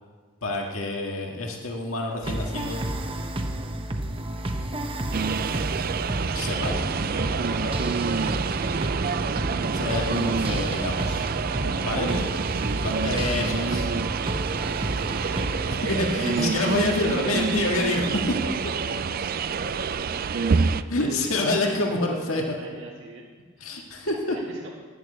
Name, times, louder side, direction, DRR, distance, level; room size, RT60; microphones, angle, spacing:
voice 1, 0.4-2.8 6.3-8.1 9.7-11.3 11.8-12.2 12.8-13.9 15.8-18.4 20.9-22.6 23.6-24.3, left 2 dB, 80° left, 0 dB, 1.8 m, -27 dB
sound 1, 2.2-15.8, right 1 dB, 25° right, 0.9 m, -31 dB
sound 2, 5.1-20.8, right 5 dB, 45° right, 0.4 m, -27 dB
voice 2, 9.9-10.7 11.7-12.3 14.6-15.5 18.2-18.5 18.9-23.2 23.6-24.7, right 2 dB, 60° right, -4 dB, 1.9 m, -42 dB
11.0 x 10.5 x 7.9 m, 1.5 s
head